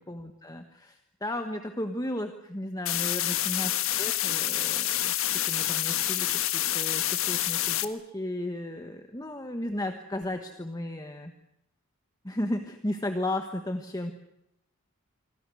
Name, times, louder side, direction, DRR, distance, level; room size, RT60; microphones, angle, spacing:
voice 1, 0.1-11.3 12.2-14.1, left 1 dB, 15° left, 6 dB, 1.4 m, -34 dB
sound 1, 2.9-7.9, left 13 dB, 70° left, 1.4 m, -28 dB
26.0 x 25.0 x 6.3 m, 0.79 s
head